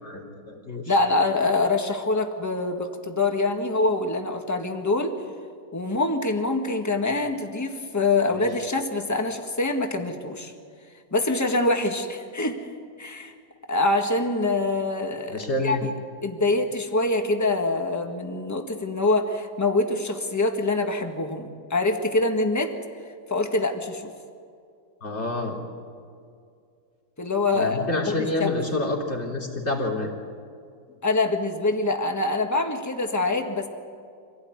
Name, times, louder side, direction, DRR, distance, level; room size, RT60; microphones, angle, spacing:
voice 1, 0.0-0.9 8.4-8.5 15.3-15.8 25.0-25.6 27.5-30.1, left 2 dB, 35° left, 0 dB, 3.8 m, -28 dB
voice 2, 0.9-5.1 5.7-10.5 11.1-12.6 13.0-13.3 13.7-15.9 16.2-22.7 23.3-24.1 27.2-28.0 28.4-28.6 31.0-33.7, left 2 dB, 10° left, 4 dB, 1.6 m, -25 dB
26.5 x 17.0 x 9.6 m, 2.3 s
omnidirectional pair, 2.0 m